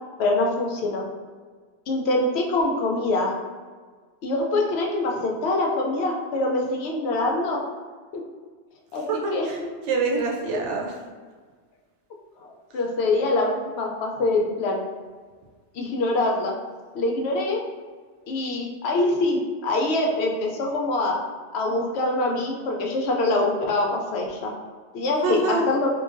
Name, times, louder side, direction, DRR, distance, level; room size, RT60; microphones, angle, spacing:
voice 1, 0.2-1.0 1.9-3.3 4.2-7.6 8.1-8.2 8.9-9.5 12.4-14.9 15.7-16.5 16.9-17.6 18.3-21.2 21.5-24.5 24.9-25.9, left 2 dB, 70° left, 0 dB, 0.8 m, -24 dB
voice 2, 9.1-9.6 9.9-11.0 25.2-25.7, right 3 dB, 85° right, 0 dB, 0.9 m, -25 dB
4.7 x 2.2 x 2.5 m, 1.5 s
omnidirectional pair, 1.2 m